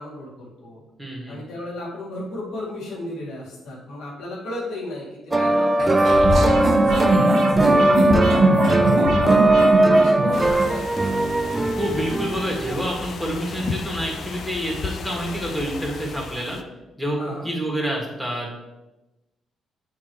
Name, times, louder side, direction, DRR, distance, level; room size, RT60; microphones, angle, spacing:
voice 1, 0.0-0.8 1.3-6.5 6.8-11.4 17.2-17.5, left 1 dB, 80° left, -4 dB, 2.0 m, -35 dB
voice 2, 1.0-1.4 11.8-16.6 17.0-18.6, equal, 5° right, -2 dB, 2.0 m, -28 dB
sound 1, 5.3-12.9, right 2 dB, 20° right, 0.4 m, -19 dB
sound 2, 5.8-10.7, right 1 dB, 60° right, 1.3 m, -21 dB
sound 3, 10.3-16.6, left 5 dB, 60° left, 0.5 m, -35 dB
8.6 x 3.6 x 3.2 m, 1.0 s
cardioid pair, 90°, 0 cm